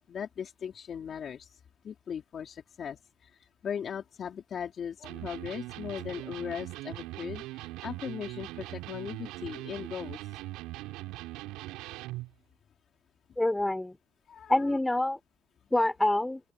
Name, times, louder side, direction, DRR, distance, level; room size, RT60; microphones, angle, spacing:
voice 1, 0.1-1.5 1.8-3.3 3.6-10.2 14.3-14.8, left 8 dB, 45° left, 3.9 m, -38 dB
Electric guitar, 5.0-12.3, right 18 dB, 85° right, 6.6 m, -41 dB
voice 2, 13.4-14.0 14.5-15.2 15.7-16.4, left 1 dB, 10° left, 5.9 m, -26 dB
open air
cardioid pair, 105°, 0 cm